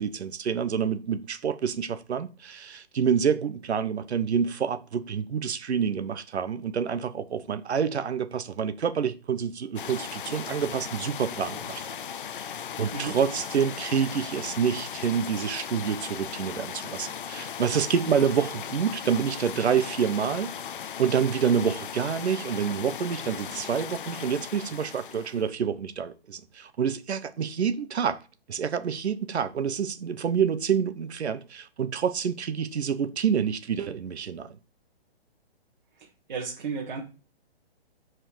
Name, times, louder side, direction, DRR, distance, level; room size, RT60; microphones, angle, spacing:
voice 1, 0.0-12.0 12.8-20.5 21.0-28.2 28.5-34.6, right 7 dB, 85° right, 1.1 m, -27 dB
sound 1, 9.8-25.5, left 8 dB, 55° left, 0.5 m, -37 dB
voice 2, 36.0-37.0, right 5 dB, 45° right, 1.9 m, -34 dB
6.5 x 4.8 x 6.2 m
hypercardioid pair, 180°, 32 cm